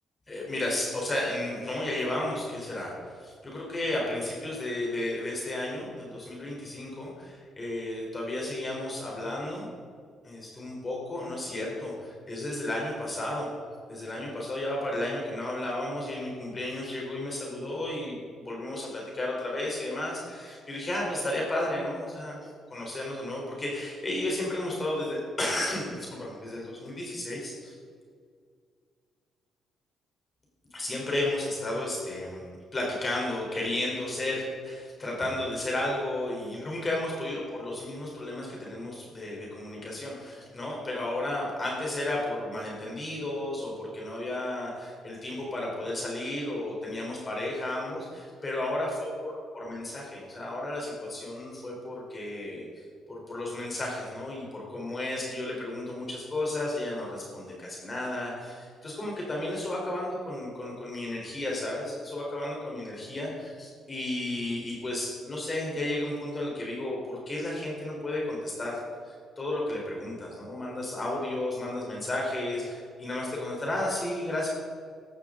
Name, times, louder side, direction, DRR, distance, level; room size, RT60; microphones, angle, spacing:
voice 1, 0.3-9.7 10.2-13.5 13.9-22.4 22.7-27.8 30.7-52.8 53.1-68.8 69.0-74.5, left 1 dB, 30° left, -2 dB, 3.8 m, -33 dB
15.0 x 12.0 x 3.8 m, 2.1 s
cardioid pair, 90°, 0 cm